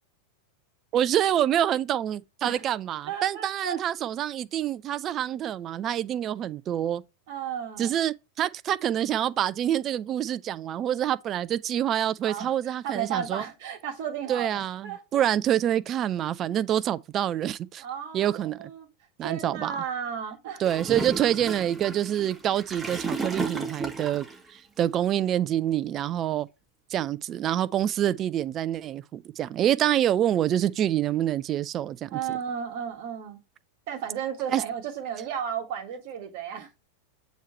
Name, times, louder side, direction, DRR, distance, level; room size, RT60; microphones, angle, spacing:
voice 1, 0.9-7.0 7.8-13.5 14.3-17.8 18.1-18.6 19.2-19.7 20.6-26.5 26.9-32.2 34.5-34.6, right 11 dB, 30° right, 0.4 m, -26 dB
voice 2, 3.1-3.8 7.3-8.0 12.2-15.2 17.8-18.9 19.2-20.6 32.1-33.4 33.9-36.8, right 8 dB, 45° right, 1.7 m, -34 dB
Gurgling / Toilet flush, 20.6-24.4, right 3 dB, 10° right, 1.1 m, -33 dB
7.3 x 3.0 x 4.3 m
figure-of-eight pair, 90°, 0 cm